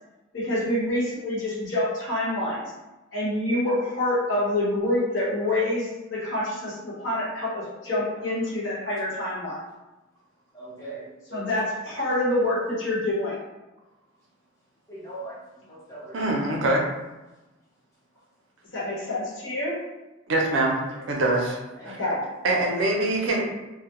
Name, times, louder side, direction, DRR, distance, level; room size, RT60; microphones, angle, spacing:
voice 1, 0.3-2.6 3.1-9.6 11.3-13.4 18.7-19.7 21.8-22.2, left 1 dB, 65° left, -6 dB, 1.0 m, -26 dB
voice 2, 10.5-11.0 14.9-15.4 15.7-16.2 21.8-22.2, right 2 dB, 15° left, -7 dB, 0.6 m, -40 dB
voice 3, 16.1-16.8 20.3-20.8 21.1-21.6 21.9-22.0 22.4-23.4, right 2 dB, 65° right, -1 dB, 0.5 m, -23 dB
2.2 x 2.1 x 2.9 m, 1.1 s
head